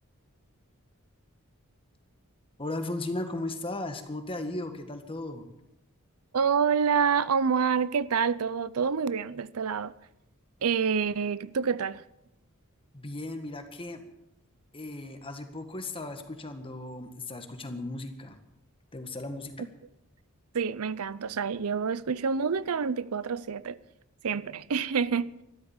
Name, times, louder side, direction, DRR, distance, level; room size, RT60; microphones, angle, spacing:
voice 1, 2.6-5.5 12.9-14.0 14.7-18.4 18.9-19.7, left 2 dB, 25° left, 1.7 m, -36 dB
voice 2, 6.3-9.9 10.6-12.0 20.5-23.8 24.2-25.3, right 6 dB, 80° right, 0.6 m, -27 dB
13.5 x 13.0 x 7.3 m
head